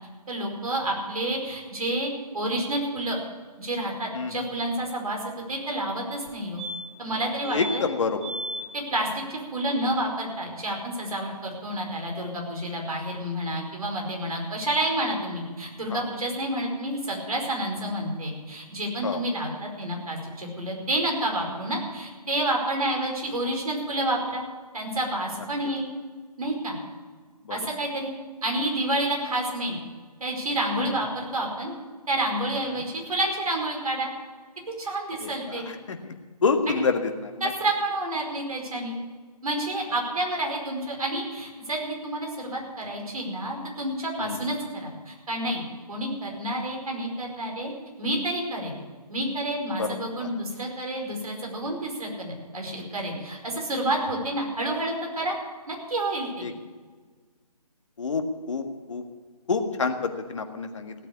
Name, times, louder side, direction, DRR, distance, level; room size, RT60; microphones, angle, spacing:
voice 1, 0.3-3.2 3.6-6.6 7.0-7.8 8.7-24.4 24.7-25.9 26.4-26.8 27.5-28.1 28.4-29.8 30.2-31.7 32.1-34.1 34.8-35.7 36.7-36.8 37.4-39.0 39.4-45.6 45.9-47.7 48.0-48.7 49.1-55.3 55.7-56.5, right 1 dB, 60° right, 1 dB, 4.9 m, -29 dB
sound 1, 6.3-6.4 6.6-7.1 7.4-7.8 8.2-8.6 11.0-11.1 11.3-11.4, equal, ahead, 2.9 m, -35 dB
voice 2, 7.5-8.2 15.9-16.0 19.0-19.2 27.5-27.6 30.8-30.9 32.7-32.8 35.2-35.6 35.9-36.1 36.4-37.3 44.2-44.5 49.8-49.9 56.4-56.5 58.0-58.2 58.5-58.6 58.9-59.0 59.5-60.9, left 4 dB, 50° left, 6 dB, 1.7 m, -27 dB
16.5 x 8.8 x 8.2 m, 1.5 s
figure-of-eight pair, 155°, 21 cm